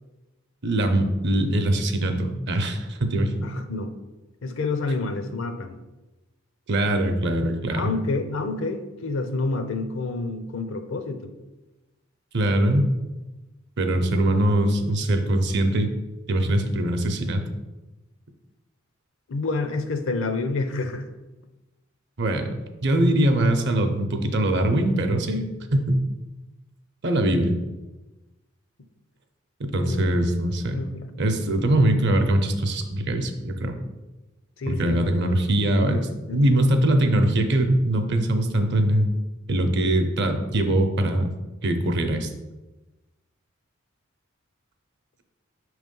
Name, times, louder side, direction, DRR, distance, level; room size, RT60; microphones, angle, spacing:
voice 1, 0.6-3.5 6.7-7.9 12.3-12.9 13.8-15.9 16.3-17.4 22.2-25.5 25.7-26.0 27.0-27.6 29.7-30.8 31.2-33.7 34.7-36.1 36.3-39.1 39.5-41.3 41.6-42.3, right 1 dB, 55° right, 6 dB, 0.7 m, -22 dB
voice 2, 3.4-3.9 4.4-5.8 7.7-11.3 19.3-21.1 29.8-30.2 30.7-31.1 34.6-35.0 35.8-36.6, left 3 dB, 65° left, 8 dB, 0.6 m, -29 dB
5.7 x 3.2 x 5.2 m, 1.1 s
head